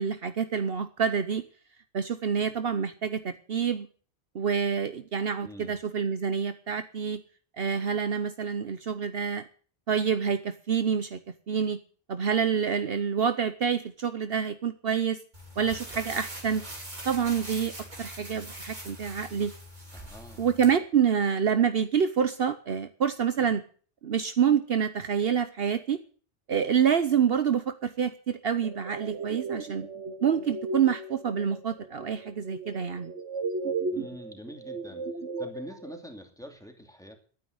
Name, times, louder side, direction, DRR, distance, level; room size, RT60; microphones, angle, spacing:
voice 1, 0.0-1.4 1.9-3.9 4.3-7.2 7.6-9.4 9.9-11.2 11.5-11.8 12.1-15.2 15.6-16.6 17.0-17.7 18.0-19.5 20.4-23.6 24.0-26.0 26.5-29.8 30.2-33.1, right 7 dB, 60° right, 10 dB, 1.1 m, -27 dB
voice 2, 5.4-5.8 19.9-20.5 33.9-35.1 35.4-37.2, equal, 5° left, 3 dB, 2.7 m, -45 dB
sound 1, 15.3-20.7, right 1 dB, 40° right, 3.1 m, -42 dB
sound 2, 28.6-36.0, right 3 dB, 80° right, 1.5 m, -36 dB
12.0 x 9.6 x 8.1 m, 0.42 s
omnidirectional pair, 1.2 m